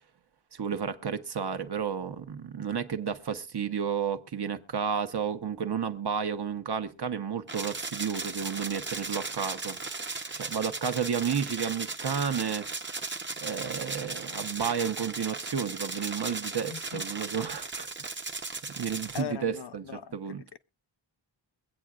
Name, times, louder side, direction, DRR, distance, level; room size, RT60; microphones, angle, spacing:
voice 1, 0.5-12.7 13.4-18.1 18.8-19.9 20.1-20.4, right 7 dB, 60° right, 1.1 m, -32 dB
sound 1, 7.5-19.2, right 3 dB, 25° right, 0.8 m, -37 dB
voice 2, 16.7-17.0 19.1-20.2 20.5-20.6, left 9 dB, 60° left, 0.6 m, -39 dB
23.0 x 8.5 x 2.4 m
wide cardioid pair, 110°, 45 cm